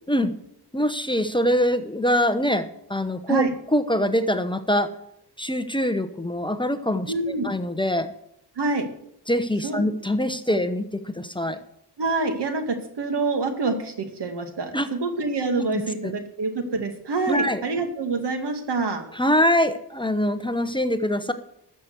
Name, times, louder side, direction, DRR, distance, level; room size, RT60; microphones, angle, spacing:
voice 1, 0.7-3.4 3.7-4.9 5.4-8.1 9.3-11.6 14.7-14.9 15.6-15.7 16.0-16.1 17.3-17.6 19.1-21.3, equal, 10° left, 9 dB, 1.0 m, -24 dB
voice 2, 7.1-7.5 8.6-8.9 9.6-9.8 10.5-10.6 12.0-19.0, right 3 dB, 80° right, 7 dB, 2.2 m, -26 dB
13.5 x 7.0 x 7.9 m, 0.74 s
wide cardioid pair, 105°, 41 cm